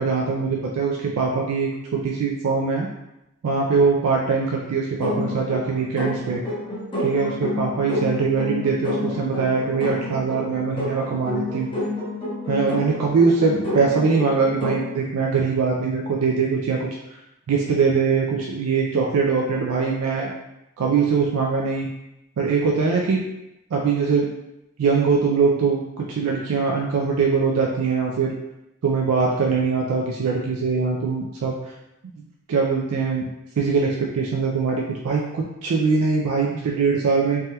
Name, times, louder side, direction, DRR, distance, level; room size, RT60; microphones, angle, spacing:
voice 1, 0.0-2.9 3.4-6.4 7.0-11.7 12.5-16.9 17.5-20.3 20.8-21.9 22.4-23.2 23.7-24.3 24.8-28.3 28.8-31.6 32.5-33.3 33.6-37.4, right 5 dB, 85° right, -1 dB, 0.4 m, -22 dB
sound 1, 5.0-15.0, left 2 dB, 20° left, 0.6 m, -29 dB
3.3 x 2.2 x 2.7 m, 0.89 s
head